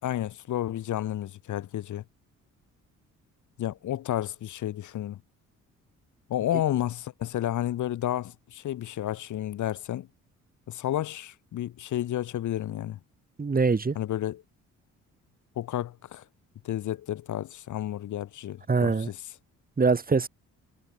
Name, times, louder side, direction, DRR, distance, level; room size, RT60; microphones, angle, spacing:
voice 1, 0.0-2.0 3.6-5.2 6.3-10.1 10.7-13.0 13.9-14.4 15.5-16.2 16.6-19.2, left 12 dB, 75° left, 4.8 m, -31 dB
voice 2, 13.4-14.0 18.7-19.1 19.8-20.3, right 4 dB, 30° right, 4.2 m, -23 dB
cardioid pair, 90°, 30 cm